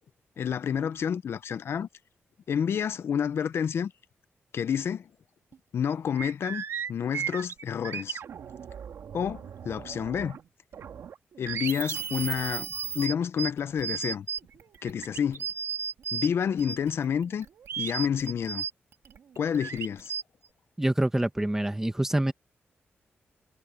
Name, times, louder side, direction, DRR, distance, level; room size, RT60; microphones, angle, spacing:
voice 1, 0.4-1.9 2.5-3.9 4.5-5.1 5.7-6.6 6.9-8.2 9.1-10.4 11.4-14.3 14.8-15.4 16.1-17.5 17.8-18.7 19.4-20.1, left 8 dB, 70° left, 0.7 m, -29 dB
sound 1, 5.5-5.6 5.9-10.5 10.7-16.3 16.6-20.2, right 7 dB, 80° right, 2.4 m, -35 dB
voice 2, 20.8-22.3, right 1 dB, 10° right, 1.5 m, -26 dB
cardioid pair, 95°, 4 cm